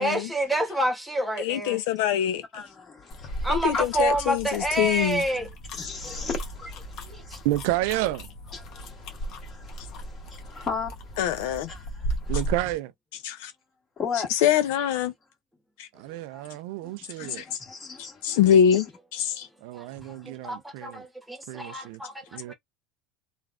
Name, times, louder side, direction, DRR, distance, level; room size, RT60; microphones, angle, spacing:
voice 1, 0.0-1.8 3.4-5.5 6.0-6.2 7.1-7.4 19.7-19.8 20.3-22.5, right 1 dB, 5° right, 1.2 m, -28 dB
voice 2, 1.4-2.3 3.5-5.2 11.2-11.7 13.2-13.5 14.3-15.1 15.8-15.9 17.2-17.4 18.2-18.9 19.1-19.5, left 9 dB, 75° left, 0.5 m, -24 dB
sound 1, 3.1-12.8, right 1 dB, 50° left, 0.9 m, -36 dB
voice 3, 3.1-3.8 5.7-7.5 8.5-11.2 11.5-11.9 12.2-12.3 14.0-14.3 16.0-16.5 16.8-16.9 17.2-18.4 18.7-18.8 19.9-20.2, left 5 dB, 30° left, 1.6 m, -36 dB
voice 4, 7.4-8.3 12.3-12.9 15.9-17.4 19.6-21.1 21.5-22.0 22.3-22.5, right 16 dB, 70° right, 0.3 m, -30 dB
3.3 x 2.3 x 2.4 m
supercardioid pair, 130°, 0 cm